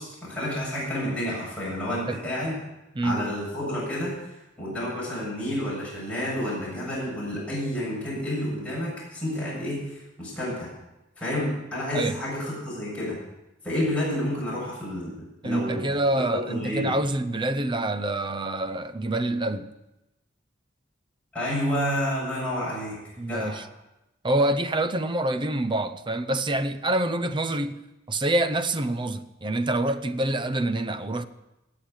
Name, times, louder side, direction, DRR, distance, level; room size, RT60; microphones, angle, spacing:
voice 1, 0.0-2.6 3.0-4.2 4.6-10.7 11.2-13.2 13.6-15.1 15.4-15.8 16.1-17.0 21.3-23.0 23.3-23.6, left 1 dB, 5° left, 7.1 m, -30 dB
voice 2, 2.9-3.3 11.9-12.2 15.4-19.7 23.2-23.6 24.2-27.8 28.1-31.3, right 1 dB, 25° right, 0.7 m, -26 dB
19.0 x 7.6 x 6.5 m
head